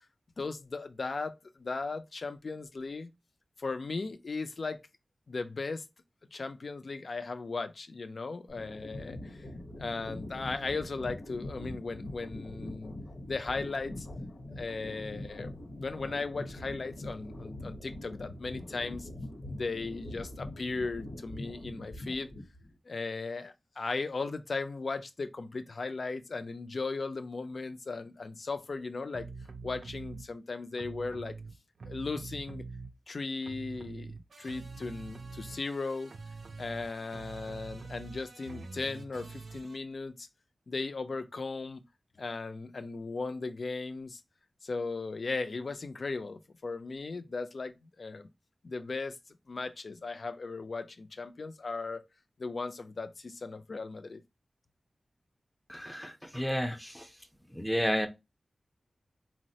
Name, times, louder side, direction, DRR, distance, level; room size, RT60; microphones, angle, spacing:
voice 1, 0.4-3.1 3.6-4.8 5.3-5.8 6.3-9.5 9.8-13.0 13.3-14.1 14.6-19.1 19.4-22.3 22.9-29.3 29.6-31.3 31.8-32.6 33.1-36.1 36.6-40.3 40.7-41.8 42.2-44.2 44.6-48.3 48.6-49.2 49.5-52.0 52.4-54.2, left 3 dB, 60° left, 0.4 m, -37 dB
sound 1, 8.5-22.7, left 1 dB, 80° left, 0.8 m, -43 dB
sound 2, 29.1-30.3 30.7-33.2 33.4-39.8, right 4 dB, 75° right, 0.4 m, -45 dB
voice 2, 55.7-57.1 57.5-58.1, equal, ahead, 0.5 m, -31 dB
3.8 x 2.1 x 2.7 m
wide cardioid pair, 100°, 0 cm